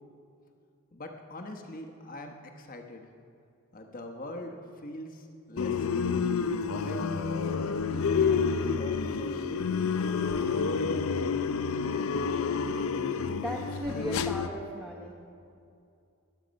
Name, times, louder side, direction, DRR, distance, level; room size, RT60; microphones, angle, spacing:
voice 1, 0.9-3.1 3.7-6.3 6.7-7.6 7.9-9.7 10.4-11.3, left 1 dB, 40° left, 4 dB, 1.1 m, -43 dB
sound 1, 5.6-14.5, left 5 dB, 70° left, 0.5 m, -29 dB
voice 2, 13.3-15.1, left 1 dB, 5° right, -4 dB, 1.0 m, -36 dB
21.5 x 8.2 x 5.3 m, 2.5 s
head